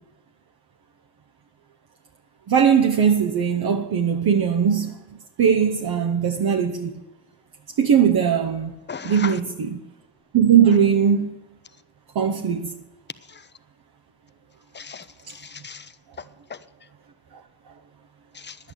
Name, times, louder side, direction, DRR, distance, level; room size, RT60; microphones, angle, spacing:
voice 1, 2.5-5.0 5.4-6.9 7.8-8.7 9.0-9.8 10.3-11.3 12.1-12.7 15.3-15.4, right 7 dB, 65° right, 1.0 m, -19 dB
voice 2, 8.9-9.4 13.3-13.4 14.7-15.9 16.5-16.6 18.3-18.6, left 6 dB, 25° left, 0.8 m, -37 dB
11.0 x 8.7 x 8.4 m
cardioid pair, 70°, 41 cm